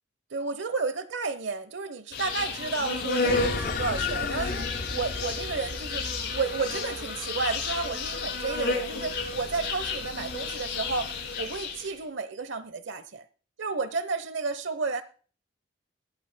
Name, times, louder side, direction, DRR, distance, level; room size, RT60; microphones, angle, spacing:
voice 1, 0.3-6.0 6.3-11.1 11.4-13.2 13.6-15.0, right 4 dB, 75° right, 0.9 m, -32 dB
Insect, 2.1-12.0, left 3 dB, 60° left, 5.1 m, -32 dB
sound 1, 3.3-8.1, left 4 dB, 45° left, 0.6 m, -34 dB
21.5 x 8.9 x 2.2 m
head